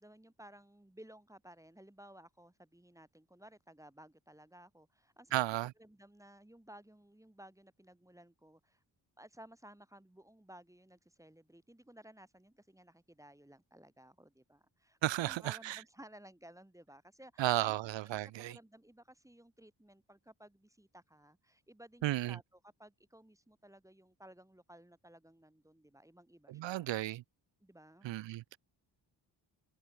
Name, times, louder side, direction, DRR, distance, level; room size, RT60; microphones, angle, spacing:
voice 1, 0.0-5.4 5.8-8.8 9.2-17.8 18.4-26.9 27.6-28.1, right 1 dB, 5° right, 1.4 m, -57 dB
voice 2, 5.3-5.7 15.0-15.8 17.4-18.6 22.0-22.4 26.5-27.2 28.0-28.6, right 15 dB, 75° right, 0.6 m, -34 dB
cardioid pair, 50°, 45 cm